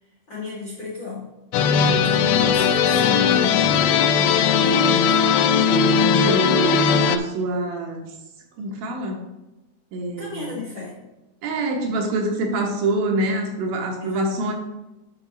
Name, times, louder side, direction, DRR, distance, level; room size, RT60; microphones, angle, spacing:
voice 1, 0.0-1.3 2.1-5.2 10.2-11.0 14.0-14.5, left 5 dB, 50° left, -6 dB, 1.5 m, -34 dB
sound 1, 1.5-7.2, left 6 dB, 80° left, 2.2 m, -18 dB
voice 2, 6.0-8.1 8.6-9.2 9.9-10.5 11.4-14.5, right 2 dB, 75° right, 1 dB, 2.6 m, -25 dB
11.0 x 4.1 x 3.9 m, 0.96 s
omnidirectional pair, 4.6 m